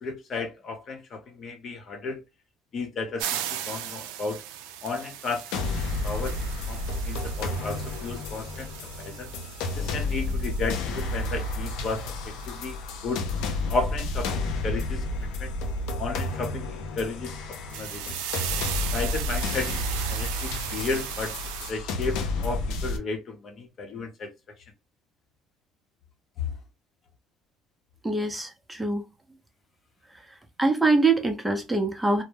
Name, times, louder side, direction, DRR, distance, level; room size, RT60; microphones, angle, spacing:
voice 1, 0.0-2.2 2.7-4.4 4.8-8.7 9.0-9.3 9.8-12.1 12.5-12.8 13.0-13.2 13.7-15.5 16.0-18.2 18.9-21.3 21.7-24.3 26.4-26.5, left 3 dB, 45° left, 0.8 m, -33 dB
sound 1, 3.2-12.7 13.1-13.2 17.7-21.7, right 10 dB, 85° right, 0.3 m, -37 dB
sound 2, 5.5-23.0, left 2 dB, 75° left, 0.4 m, -31 dB
voice 2, 28.0-29.0 30.6-32.2, right 3 dB, 10° right, 0.6 m, -24 dB
2.1 x 2.0 x 3.2 m
supercardioid pair, 90°, 0 cm